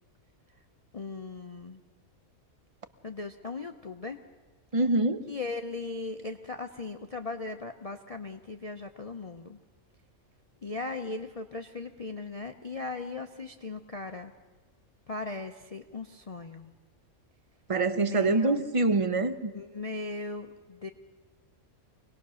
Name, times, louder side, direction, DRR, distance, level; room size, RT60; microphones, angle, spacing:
voice 1, 0.9-1.8 3.0-4.2 5.3-9.6 10.6-14.3 15.1-16.7 18.0-18.6 19.5-20.9, left 3 dB, 35° left, 6 dB, 0.6 m, -38 dB
voice 2, 4.7-5.2 17.7-19.5, right 2 dB, 30° right, 11 dB, 0.7 m, -25 dB
24.5 x 19.5 x 6.3 m, 1.3 s
omnidirectional pair, 1.5 m